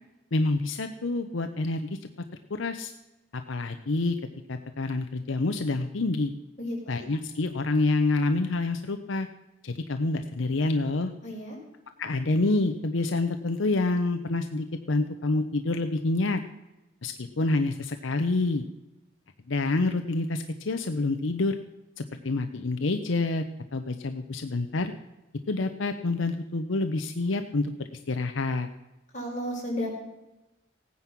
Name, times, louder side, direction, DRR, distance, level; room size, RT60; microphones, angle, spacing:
voice 1, 0.3-2.0 2.5-2.9 3.3-4.2 4.5-6.3 6.9-9.3 9.6-11.1 12.0-16.4 17.0-18.7 19.5-21.6 22.0-23.4 23.7-24.9 25.5-28.7, left 2 dB, 80° left, 7 dB, 0.7 m, -27 dB
voice 2, 6.6-7.1 11.2-11.6 29.1-29.9, equal, 40° left, -4 dB, 5.5 m, -33 dB
17.0 x 9.6 x 5.9 m, 0.99 s
head